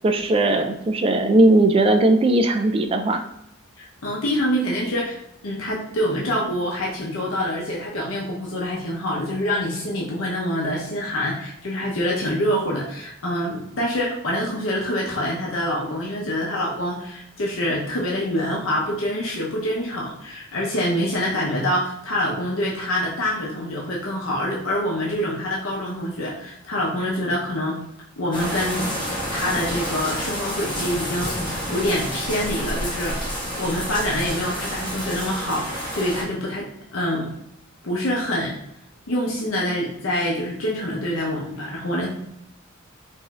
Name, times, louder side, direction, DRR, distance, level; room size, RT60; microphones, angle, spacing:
voice 1, 0.0-3.2, right 2 dB, 25° right, 6 dB, 0.3 m, -18 dB
voice 2, 3.8-5.2 5.4-27.8 28.2-28.9 29.3-31.4 31.7-33.2 33.6-36.7 36.9-37.3 37.8-38.6 39.1-42.1, equal, 85° left, -4 dB, 0.7 m, -25 dB
sound 1, 28.3-36.2, equal, 20° left, 1.2 m, -29 dB
4.8 x 2.6 x 2.3 m, 0.80 s
head